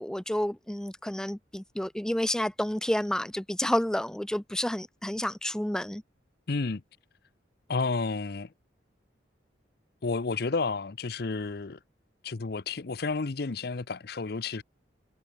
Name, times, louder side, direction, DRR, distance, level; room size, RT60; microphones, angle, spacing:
voice 1, 0.0-6.0, left 1 dB, 5° left, 0.4 m, -30 dB
voice 2, 6.5-6.8 7.7-8.5 10.0-11.8 12.2-14.6, left 4 dB, 60° left, 0.7 m, -31 dB
head